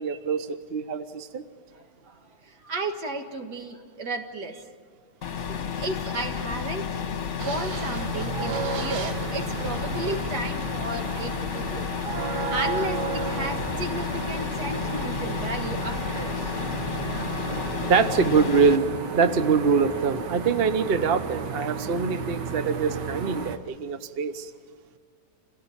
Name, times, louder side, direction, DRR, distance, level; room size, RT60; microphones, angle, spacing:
voice 1, 0.0-1.4 17.9-24.5, right 5 dB, 45° right, 10 dB, 0.9 m, -24 dB
voice 2, 1.7-4.6 5.8-7.0 7.4-11.9 12.3-16.7, right 2 dB, 70° right, 4 dB, 2.4 m, -34 dB
sound 1, 5.2-18.8, left 7 dB, 50° left, 1.3 m, -31 dB
sound 2, 7.4-23.6, right 5 dB, 90° right, 1.9 m, -33 dB
27.5 x 17.5 x 8.7 m, 2.1 s
omnidirectional pair, 1.8 m